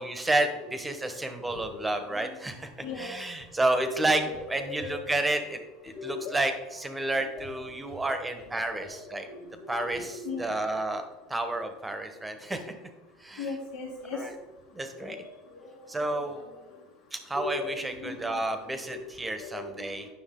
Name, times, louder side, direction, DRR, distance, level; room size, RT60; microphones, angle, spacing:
voice 1, 0.0-2.7 3.0-4.2 4.5-5.6 5.8-9.3 9.7-11.0 11.3-12.7 13.2-13.5 14.1-14.3 14.7-15.2 15.9-16.4 17.1-20.1, right 2 dB, 10° right, 7 dB, 1.0 m, -30 dB
voice 2, 2.8-3.1 3.8-5.0 6.0-6.4 7.4-7.6 8.6-10.5 13.4-14.2 15.0-15.2 16.0-16.1 16.4-16.5 17.4-17.7 18.0-18.4 19.4-19.6, left 4 dB, 80° left, -5 dB, 2.0 m, -38 dB
9.7 x 6.2 x 3.7 m, 1.1 s
supercardioid pair, 145°, 0 cm